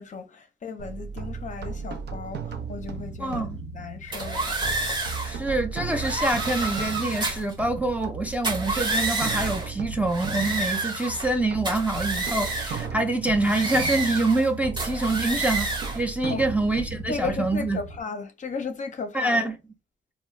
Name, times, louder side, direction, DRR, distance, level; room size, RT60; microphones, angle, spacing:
voice 1, 0.0-3.5 3.7-4.6 16.3-16.5 17.1-19.5, left 5 dB, 40° left, 0.6 m, -35 dB
sound 1, 0.8-18.0, right 5 dB, 60° right, 0.6 m, -36 dB
voice 2, 3.2-3.6 5.2-17.8 19.1-19.5, right 2 dB, 5° right, 0.5 m, -26 dB
sound 2, 4.1-5.3 5.9-7.5 8.3-9.7 10.1-11.3 11.6-12.9 13.4-14.5 14.8-16.0, right 2 dB, 25° right, 0.9 m, -29 dB
2.3 x 2.1 x 3.1 m
cardioid pair, 90°, 20 cm